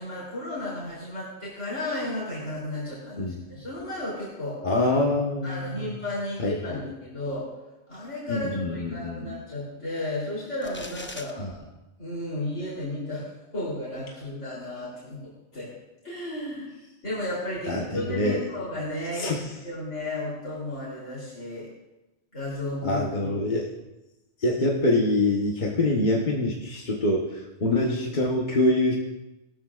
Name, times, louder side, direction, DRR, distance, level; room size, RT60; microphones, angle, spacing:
voice 1, 0.0-4.6 5.4-7.5 7.9-11.6 12.0-13.3 13.5-15.7 16.0-16.7 17.0-21.7 22.3-23.3, left 1 dB, 85° left, -7 dB, 3.7 m, -33 dB
voice 2, 4.6-5.9 6.4-6.8 8.3-9.4 11.4-11.5 17.7-18.4 19.2-19.4 22.8-23.7 24.4-28.9, left 2 dB, 40° left, -2 dB, 1.3 m, -25 dB
sound 1, 10.6-11.3, left 1 dB, 15° left, 0.5 m, -40 dB
18.0 x 13.5 x 2.5 m, 1.0 s
omnidirectional pair, 1.2 m